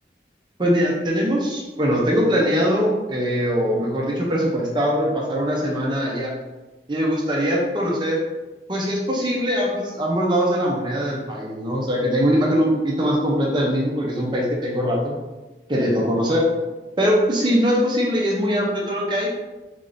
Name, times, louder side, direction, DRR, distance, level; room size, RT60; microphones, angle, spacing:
voice 1, 0.6-6.4 6.9-8.2 8.7-15.1 15.7-16.5 17.0-19.4, equal, 25° right, -3 dB, 0.5 m, -21 dB
3.7 x 3.5 x 2.5 m, 1.1 s
head